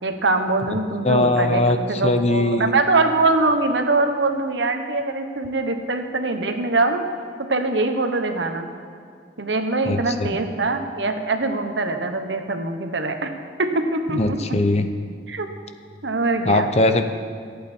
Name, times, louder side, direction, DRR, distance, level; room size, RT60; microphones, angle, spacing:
voice 1, 0.0-7.0 7.5-8.7 9.4-13.3 13.6-14.4 15.3-15.5 16.0-16.7, right 3 dB, 80° right, 6 dB, 1.2 m, -23 dB
voice 2, 1.0-2.7 9.9-10.4 14.1-14.9 16.5-17.0, left 2 dB, 35° left, 8 dB, 0.8 m, -20 dB
25.0 x 8.5 x 4.5 m, 2.2 s
head